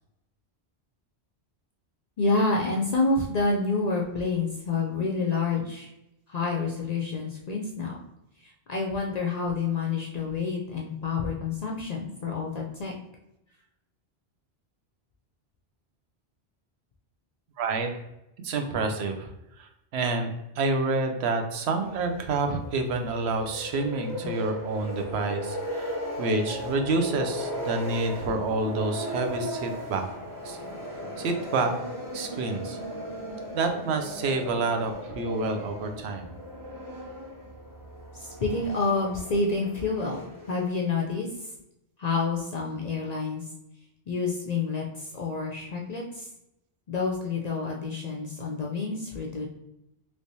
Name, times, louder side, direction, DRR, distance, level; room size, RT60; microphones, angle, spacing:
voice 1, 2.2-5.9 6.3-8.0 8.4-12.9 38.1-41.3 42.0-43.4 44.1-46.3 46.9-49.5, left 3 dB, 55° left, -1 dB, 0.4 m, -28 dB
voice 2, 17.6-17.9 18.4-19.3 19.6-30.1 30.4-30.6 31.2-31.7 32.1-32.8 33.5-36.3, right 3 dB, 80° right, 5 dB, 0.8 m, -28 dB
sound 1, 21.8-40.9, equal, 25° right, 0.5 m, -37 dB
3.2 x 3.2 x 2.7 m, 0.87 s
omnidirectional pair, 1.1 m